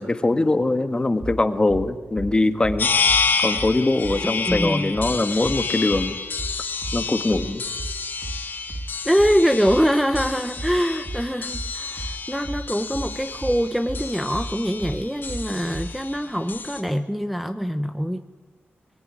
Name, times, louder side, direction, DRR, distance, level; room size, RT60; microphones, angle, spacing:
voice 1, 0.0-2.9 3.4-6.2 6.9-7.6, left 2 dB, 20° left, 9 dB, 1.5 m, -22 dB
sound 1, 1.2-16.0, right 1 dB, 30° right, 2.7 m, -33 dB
sound 2, 2.8-16.8, left 5 dB, 50° left, 3.5 m, -29 dB
voice 2, 4.2-4.9 9.0-18.2, equal, ahead, 8 dB, 0.9 m, -23 dB
24.5 x 22.0 x 9.9 m, 1.3 s
wide cardioid pair, 135°, 4 cm